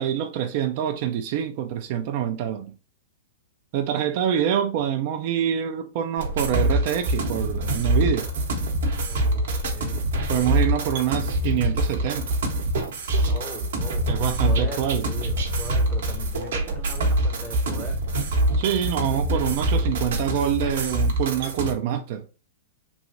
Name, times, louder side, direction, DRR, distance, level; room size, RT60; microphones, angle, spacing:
voice 1, 0.0-2.7 3.7-8.3 10.3-12.4 14.1-15.1 18.6-22.2, right 9 dB, 50° right, 0.4 m, -26 dB
sound 1, 6.2-21.7, right 1 dB, 70° right, 0.9 m, -25 dB
voice 2, 9.1-10.5 13.3-18.0, left 1 dB, 5° left, 0.7 m, -39 dB
3.1 x 2.6 x 2.6 m
hypercardioid pair, 115°, 0 cm